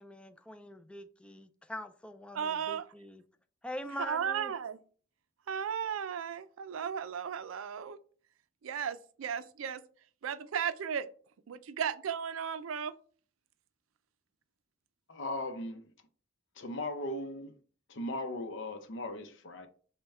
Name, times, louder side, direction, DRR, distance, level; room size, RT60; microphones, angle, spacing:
voice 1, 0.0-3.2 3.6-4.5, left 1 dB, 5° left, 0.3 m, -43 dB
voice 2, 2.3-2.8 4.1-4.8 5.5-8.0 8.6-9.8 10.2-11.1 11.5-12.9, right 7 dB, 90° right, 0.4 m, -35 dB
voice 3, 15.1-15.8 16.6-17.6 17.9-19.7, left 1 dB, 65° left, 0.6 m, -38 dB
5.4 x 2.2 x 4.2 m
head